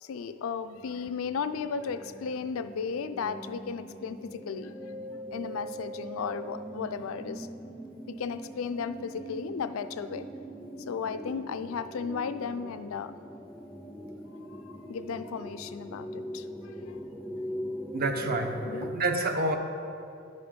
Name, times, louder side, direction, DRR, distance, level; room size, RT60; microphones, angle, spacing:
voice 1, 0.0-4.9 5.3-7.5 8.1-10.3 10.9-13.2 14.5-16.5 16.9-17.0 18.7-18.9, left 6 dB, 75° left, 11 dB, 0.4 m, -35 dB
sound 1, 0.7-19.0, equal, ahead, 0.3 m, -41 dB
voice 2, 17.9-19.6, right 2 dB, 45° right, 6 dB, 0.7 m, -28 dB
10.5 x 5.3 x 5.1 m, 2.6 s
head